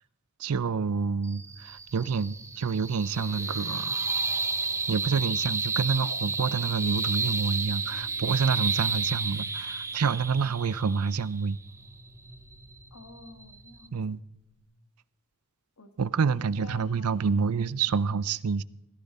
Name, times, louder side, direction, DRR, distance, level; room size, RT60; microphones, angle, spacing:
voice 1, 0.4-4.0 4.9-11.6 13.9-14.2 16.0-18.6, right 5 dB, 80° right, 0.5 m, -28 dB
sound 1, 1.2-13.9, right 4 dB, 15° right, 0.6 m, -32 dB
sound 2, 7.8-14.6, equal, 45° left, 5.1 m, -55 dB
voice 2, 12.9-14.0 15.8-16.0 16.3-17.5, left 4 dB, 80° left, 1.5 m, -49 dB
17.0 x 14.5 x 4.3 m
head